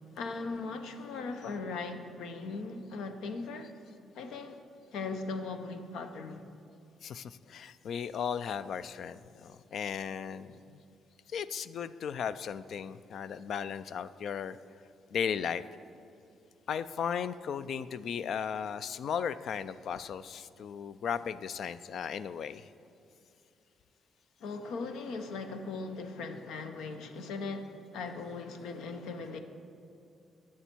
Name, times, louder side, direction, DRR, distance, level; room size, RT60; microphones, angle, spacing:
voice 1, 0.1-3.7 4.1-4.6 4.9-6.4 24.4-29.4, left 3 dB, 85° left, 8 dB, 0.8 m, -39 dB
voice 2, 7.0-10.8 11.3-14.6 15.1-15.6 16.7-22.7, left 7 dB, 65° left, 15 dB, 0.3 m, -36 dB
11.0 x 7.4 x 4.5 m, 2.6 s
cardioid pair, 90°, 0 cm